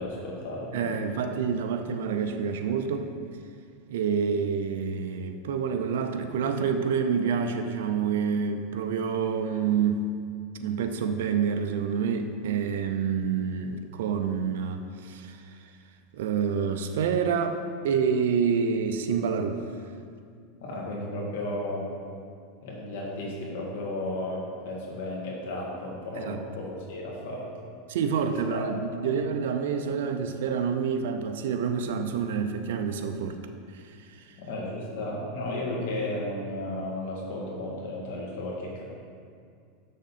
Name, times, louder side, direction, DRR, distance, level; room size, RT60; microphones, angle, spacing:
voice 1, 0.0-1.0 20.6-21.9 22.6-27.5 28.3-29.1 34.4-38.8, left 1 dB, 80° left, -3 dB, 1.8 m, -34 dB
voice 2, 0.7-3.1 3.9-10.0 10.6-15.4 16.1-17.6 17.8-19.6 26.2-26.4 27.9-33.4 33.7-34.0, right 6 dB, 85° right, 6 dB, 0.5 m, -27 dB
6.4 x 6.4 x 4.2 m, 2.3 s
supercardioid pair, 140°, 0 cm